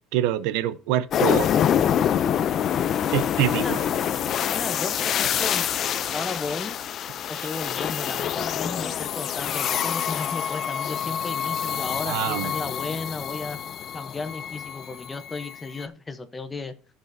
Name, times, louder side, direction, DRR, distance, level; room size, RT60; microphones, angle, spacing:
voice 1, 0.1-1.5 3.1-3.8 12.1-12.5, right 11 dB, 70° right, 0.7 m, -25 dB
sound 1, 1.1-15.8, left 9 dB, 35° left, 0.4 m, -26 dB
voice 2, 4.5-5.6 6.1-6.8 7.3-13.6 13.9-16.7, left 3 dB, 15° left, 0.8 m, -34 dB
15.5 x 5.4 x 2.6 m
cardioid pair, 165°, 0 cm